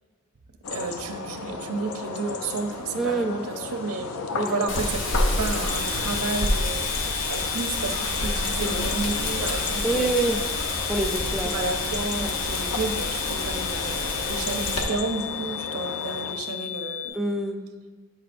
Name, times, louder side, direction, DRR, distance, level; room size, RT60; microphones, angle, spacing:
sound 1, 0.6-16.3, left 3 dB, 75° left, 0.5 m, -34 dB
voice 1, 0.7-6.9 7.2-10.1 10.5-10.6 11.5-17.1, right 3 dB, 90° right, 6 dB, 0.6 m, -31 dB
voice 2, 3.0-3.3 4.4-4.6 9.8-10.4 10.9-11.8 12.2-12.3 17.1-17.6, right 2 dB, ahead, 4 dB, 0.4 m, -26 dB
Wind, 4.7-14.8, left 2 dB, 60° left, 0.9 m, -28 dB
sound 2, 5.7-17.1, left 12 dB, 35° left, 1.5 m, -35 dB
8.2 x 6.6 x 2.5 m, 1.4 s
head